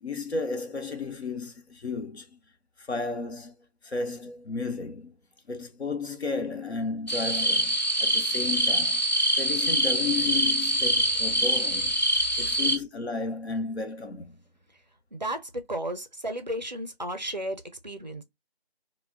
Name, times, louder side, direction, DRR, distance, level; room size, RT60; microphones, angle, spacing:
voice 1, 0.0-2.3 2.8-3.5 3.8-5.1 5.5-9.0 9.3-12.0 12.4-14.4, left 4 dB, 90° left, 0.8 m, -33 dB
sound 1, 7.1-12.8, right 1 dB, 45° left, 0.4 m, -25 dB
voice 2, 15.1-18.2, right 1 dB, 45° right, 0.4 m, -34 dB
2.3 x 2.1 x 3.4 m
figure-of-eight pair, 175°, 32 cm